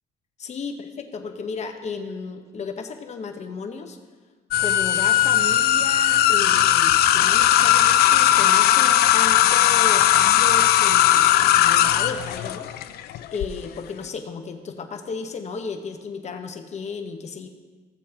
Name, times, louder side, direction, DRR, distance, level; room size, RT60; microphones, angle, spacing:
voice 1, 0.4-4.0 4.6-12.7 13.3-17.5, left 5 dB, 40° left, 5 dB, 1.0 m, -34 dB
sound 1, 4.5-13.5, left 12 dB, 70° left, 0.5 m, -18 dB
15.5 x 7.2 x 2.9 m, 1.4 s
cardioid pair, 110°, 17 cm